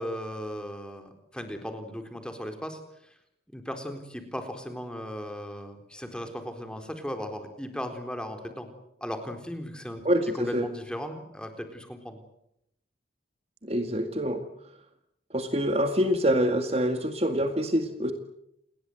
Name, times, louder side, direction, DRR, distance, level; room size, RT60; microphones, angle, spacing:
voice 1, 0.0-3.1 3.5-8.7 9.0-10.0 10.3-12.2, equal, 5° left, 6 dB, 4.0 m, -37 dB
voice 2, 10.0-10.7 13.6-14.4 15.3-18.1, equal, 35° right, 7 dB, 2.1 m, -26 dB
29.0 x 21.0 x 8.0 m, 0.76 s
head